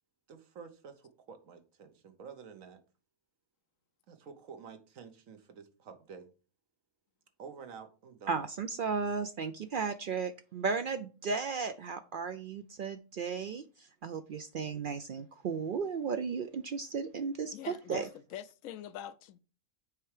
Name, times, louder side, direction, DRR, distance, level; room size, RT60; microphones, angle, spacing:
voice 1, 0.3-2.8 4.1-6.3 7.4-8.4, right 6 dB, 85° right, 1.4 m, -50 dB
voice 2, 8.3-13.6 14.0-18.1, right 5 dB, 65° right, 0.5 m, -35 dB
voice 3, 17.4-18.1 18.3-19.4, left 11 dB, 80° left, 1.0 m, -44 dB
6.9 x 4.5 x 4.8 m
omnidirectional pair, 1.4 m